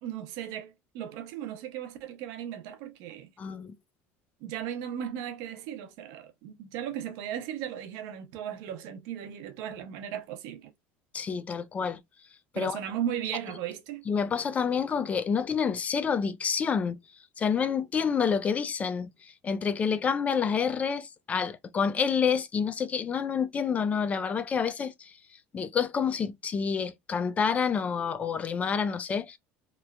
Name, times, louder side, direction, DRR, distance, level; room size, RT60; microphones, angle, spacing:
voice 1, 0.0-3.3 4.4-10.7 12.5-14.0, right 10 dB, 70° right, 0.7 m, -36 dB
voice 2, 3.4-3.7 11.1-12.0 12.5-12.8 14.1-17.0 17.4-25.1 25.5-29.4, left 6 dB, 25° left, 0.4 m, -28 dB
3.0 x 2.1 x 2.3 m
supercardioid pair, 130°, 6 cm